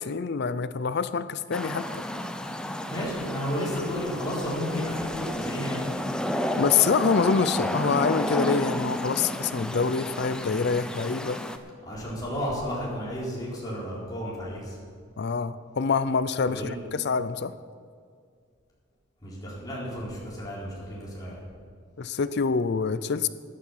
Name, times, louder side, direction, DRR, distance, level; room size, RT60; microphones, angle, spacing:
voice 1, 0.0-2.0 6.6-11.4 15.2-17.5 22.0-23.3, left 5 dB, 55° left, 14 dB, 0.5 m, -26 dB
sound 1, 1.5-11.6, left 1 dB, 5° left, 0.6 m, -32 dB
voice 2, 2.8-5.9 11.8-14.8 16.5-16.8 19.2-21.4, equal, 20° left, -7 dB, 4.0 m, -32 dB
13.5 x 10.0 x 5.7 m, 2.1 s
head